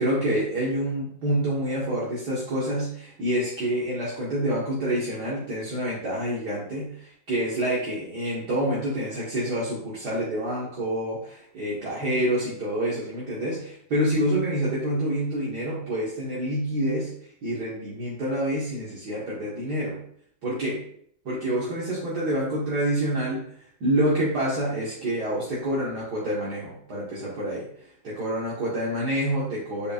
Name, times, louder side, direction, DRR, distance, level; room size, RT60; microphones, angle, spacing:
voice 1, 0.0-17.1 17.4-20.0 20.4-20.9 21.3-27.7 28.0-29.9, right 1 dB, 60° right, -7 dB, 2.0 m, -27 dB
7.7 x 5.4 x 2.5 m, 0.63 s
omnidirectional pair, 2.1 m